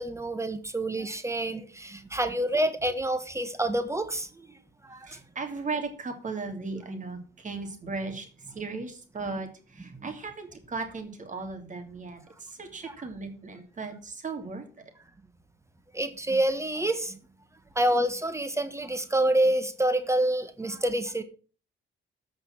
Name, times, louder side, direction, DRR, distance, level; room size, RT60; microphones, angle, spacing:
voice 1, 0.0-4.3 4.8-5.2 15.9-17.2 17.7-21.2, right 1 dB, 15° right, 11 dB, 1.3 m, -27 dB
voice 2, 5.1-8.3 8.5-14.7, right 4 dB, 40° right, 6 dB, 2.8 m, -36 dB
14.0 x 5.3 x 6.0 m, 0.37 s
cardioid pair, 90°, 20 cm